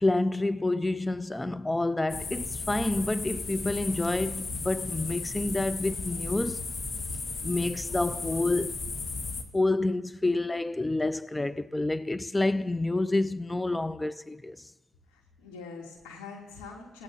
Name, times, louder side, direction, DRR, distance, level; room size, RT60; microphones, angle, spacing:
voice 1, 0.0-6.6 7.4-8.8 9.5-14.7, left 2 dB, 15° left, 0.4 m, -28 dB
sound 1, 2.1-9.4, left 3 dB, 45° left, 1.5 m, -35 dB
voice 2, 15.1-17.0, left 4 dB, 90° left, 2.7 m, -44 dB
29.0 x 16.5 x 2.7 m
supercardioid pair, 55°, 0 cm